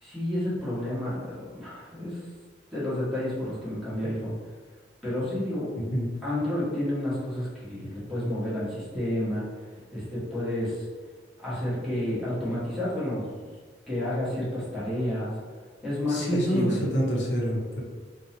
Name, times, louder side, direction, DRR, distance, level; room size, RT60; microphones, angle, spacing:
voice 1, 0.0-2.2 2.7-4.4 5.0-5.7 6.2-9.5 9.9-10.9 11.4-13.2 13.9-15.3 15.8-16.8, left 1 dB, ahead, -10 dB, 0.8 m, -30 dB
voice 2, 16.1-17.8, equal, 75° left, -2 dB, 0.6 m, -27 dB
2.6 x 2.0 x 2.7 m, 1.5 s
head